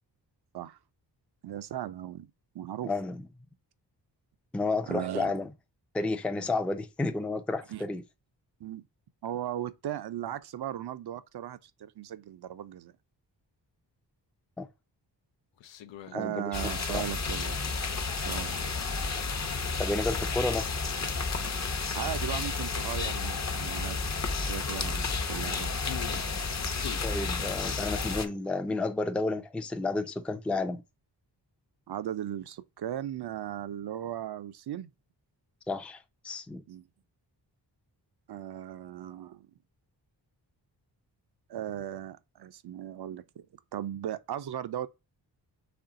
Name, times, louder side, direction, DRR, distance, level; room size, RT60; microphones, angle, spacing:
voice 1, 1.4-2.3 2.5-2.9 4.9-5.3 7.7-7.8 8.6-8.8 9.2-12.9 16.1-17.6 18.2-18.6 21.9-24.1 24.5-25.7 31.9-34.9 36.7-36.9 38.3-39.5 41.5-43.5 43.7-44.9, right 11 dB, 65° right, 0.6 m, -37 dB
voice 2, 2.8-3.2 4.5-5.5 5.9-8.0 14.6-14.7 16.1-17.0 19.8-20.6 27.0-30.8 35.7-36.6, left 3 dB, 5° left, 0.4 m, -31 dB
sound 1, 15.6-16.3 16.8-17.6 19.0-19.1 21.8-21.9 22.1-22.2 22.7-22.9 24.5-26.4 26.8-28.2, left 11 dB, 85° left, 0.5 m, -45 dB
sound 2, 16.5-28.3, left 4 dB, 40° left, 0.8 m, -31 dB
4.4 x 3.2 x 3.7 m
wide cardioid pair, 95°, 43 cm